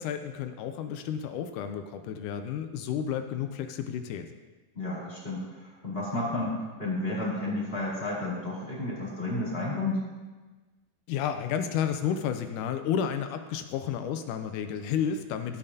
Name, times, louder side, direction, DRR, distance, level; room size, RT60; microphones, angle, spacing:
voice 1, 0.0-4.3 11.1-15.6, left 8 dB, 80° left, 8 dB, 2.0 m, -31 dB
voice 2, 4.7-10.0, left 2 dB, 20° left, -6 dB, 1.9 m, -32 dB
14.5 x 8.5 x 2.8 m, 1.3 s
omnidirectional pair, 3.8 m